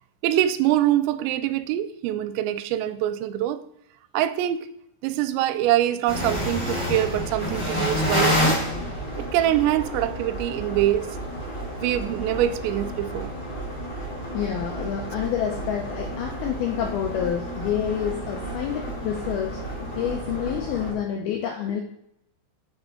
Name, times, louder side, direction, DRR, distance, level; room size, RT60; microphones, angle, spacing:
voice 1, 0.2-3.6 4.1-4.7 5.0-8.6 9.2-11.2 11.8-13.3, right 12 dB, 85° right, 12 dB, 2.7 m, -24 dB
sound 1, 6.1-20.9, equal, 25° left, 1.2 m, -30 dB
voice 2, 14.3-19.6 20.0-21.8, left 9 dB, 90° left, 2 dB, 2.2 m, -28 dB
9.0 x 6.2 x 3.7 m, 0.77 s
omnidirectional pair, 5.3 m